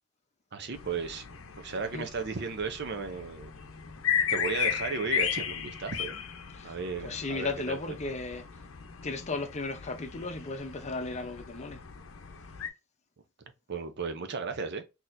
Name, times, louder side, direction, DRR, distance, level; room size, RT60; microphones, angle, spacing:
voice 1, 0.5-1.3 1.6-3.5 4.3-6.2 6.6-8.0 13.7-14.8, right 5 dB, 55° right, 0.7 m, -35 dB
sound 1, 0.7-12.7, left 8 dB, 85° left, 0.6 m, -36 dB
voice 2, 7.0-8.4 9.0-11.8, left 3 dB, 35° left, 0.7 m, -35 dB
4.1 x 2.9 x 2.6 m
head